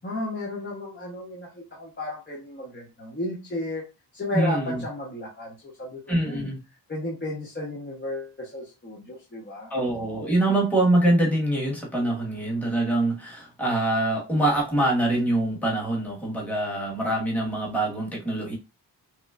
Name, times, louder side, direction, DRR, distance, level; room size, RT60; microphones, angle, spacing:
voice 1, 0.0-3.8 4.1-6.5 6.9-9.7, left 1 dB, 25° left, 1.1 m, -33 dB
voice 2, 4.3-4.8 6.1-6.6 9.7-18.6, right 1 dB, 5° left, 1.4 m, -24 dB
6.0 x 2.1 x 2.4 m
wide cardioid pair, 110°, 42 cm